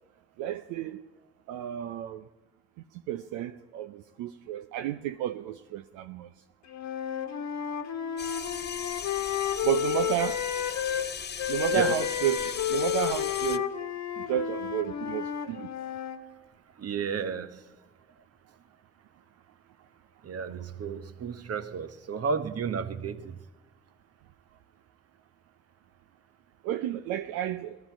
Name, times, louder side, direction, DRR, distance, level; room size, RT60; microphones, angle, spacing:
voice 1, 0.4-1.0 1.5-2.2 3.1-6.3 9.6-10.4 11.5-13.7 14.2-15.7 26.6-27.8, right 12 dB, 80° right, 0.5 m, -31 dB
Wind instrument woodwind instrument, 6.7-11.1 11.4-16.2, left 10 dB, 65° left, 1.3 m, -31 dB
sound 1, 8.2-13.6, left 7 dB, 35° left, 0.7 m, -38 dB
voice 2, 11.7-12.1 16.8-17.7 20.2-23.4, right 6 dB, 50° right, 1.1 m, -32 dB
18.5 x 12.5 x 4.5 m
hypercardioid pair, 40°, 30 cm